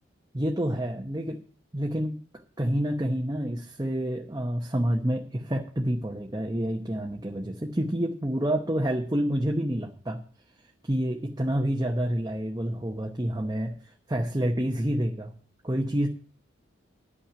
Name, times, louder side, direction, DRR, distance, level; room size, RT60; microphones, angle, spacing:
voice 1, 0.3-1.4 1.7-2.2 2.6-10.2 10.8-13.7 14.1-15.3 15.6-16.1, equal, 20° right, 1 dB, 0.9 m, -28 dB
11.0 x 5.8 x 8.6 m, 0.42 s
head